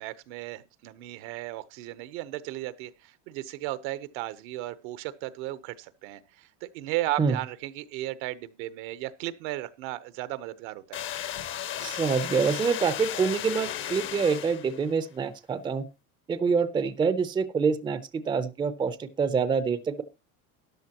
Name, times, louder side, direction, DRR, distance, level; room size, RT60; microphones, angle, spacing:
voice 1, 0.0-11.0, right 16 dB, 70° right, 0.9 m, -35 dB
sound 1, 10.9-15.0, left 11 dB, 35° left, 0.7 m, -35 dB
voice 2, 11.8-15.8 16.3-20.0, right 5 dB, 15° right, 0.5 m, -26 dB
13.5 x 10.5 x 2.9 m
cardioid pair, 150°, 36 cm